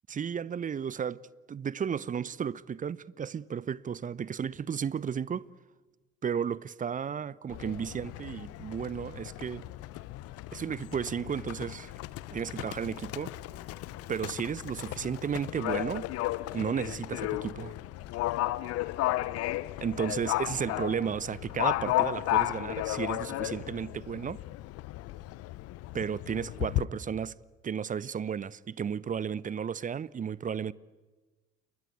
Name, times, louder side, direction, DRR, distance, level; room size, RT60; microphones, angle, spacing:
voice 1, 0.1-1.2 1.5-5.5 6.2-9.7 10.5-11.9 12.3-13.3 14.1-16.1 16.5-17.8 19.8-24.4 25.9-27.4 27.6-30.7, right 7 dB, 25° right, 0.8 m, -33 dB
Livestock farm animals working animals, 7.5-26.8, left 17 dB, 50° left, 1.0 m, -34 dB
29.5 x 23.5 x 8.5 m
figure-of-eight pair, 55°, 31 cm